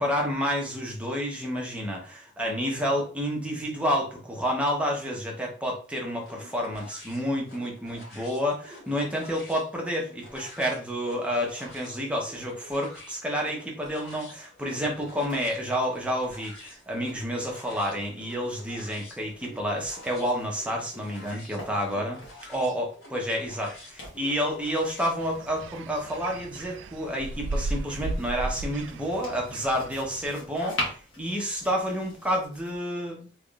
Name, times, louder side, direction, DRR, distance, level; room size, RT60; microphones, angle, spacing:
voice 1, 0.0-22.2 22.5-33.3, equal, 5° right, -1 dB, 0.8 m, -29 dB
sound 1, 6.2-25.2, left 1 dB, 60° left, 1.7 m, -49 dB
sound 2, 14.6-22.7 23.7-32.8, left 1 dB, 75° left, 1.5 m, -44 dB
sound 3, 25.2-30.3, right 2 dB, 70° right, 0.3 m, -35 dB
3.5 x 3.1 x 2.4 m, 0.40 s
head